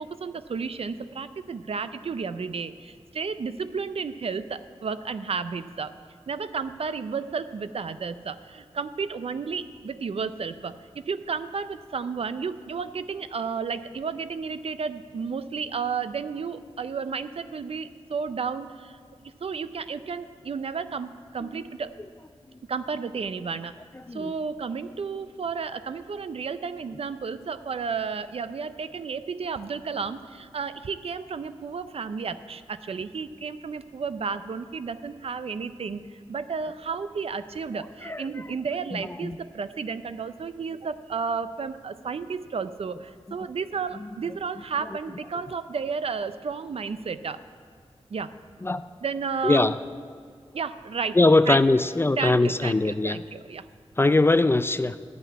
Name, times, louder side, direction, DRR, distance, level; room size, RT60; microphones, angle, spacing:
voice 1, 0.0-5.9 6.3-19.0 19.2-21.9 22.7-23.8 24.1-47.4 48.1-48.3 49.0-49.7 50.5-51.2 51.5-51.6 52.2-53.7, right 5 dB, 65° right, 12 dB, 0.5 m, -32 dB
voice 2, 38.9-39.4 48.6-48.8 49.4-49.7 51.2-53.2 54.0-55.0, left 2 dB, 20° left, 13 dB, 0.3 m, -21 dB
12.5 x 5.7 x 9.3 m, 2.1 s
wide cardioid pair, 115°, 11 cm